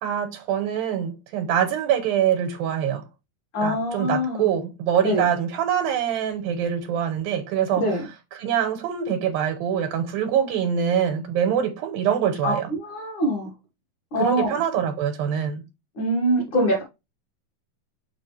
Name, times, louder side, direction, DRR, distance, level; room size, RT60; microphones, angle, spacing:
voice 1, 0.0-3.0 3.6-8.0 8.3-12.7 14.2-15.6, right 9 dB, 85° right, 2.7 m, -24 dB
voice 2, 3.5-4.5 5.0-5.3 7.8-8.0 12.4-13.5 14.1-14.5 16.0-16.8, equal, 45° left, 2.0 m, -24 dB
7.2 x 4.4 x 3.2 m
omnidirectional pair, 4.1 m